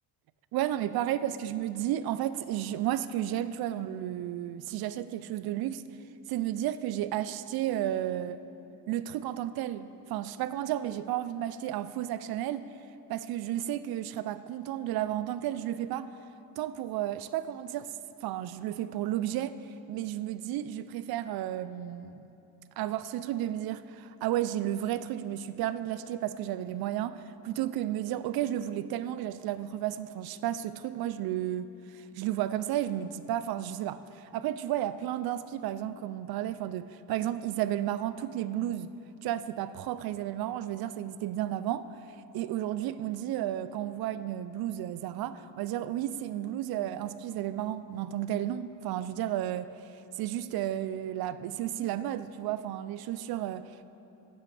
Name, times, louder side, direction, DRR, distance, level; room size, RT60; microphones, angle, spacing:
voice 1, 0.5-5.9 6.3-8.4 8.9-12.7 13.1-16.1 16.6-17.9 18.2-19.6 19.9-22.1 22.8-38.9 39.2-41.9 42.3-49.7 50.2-53.8, right 12 dB, 60° right, 14 dB, 0.5 m, -32 dB
16.0 x 7.9 x 3.3 m, 2.9 s
cardioid pair, 105°, 41 cm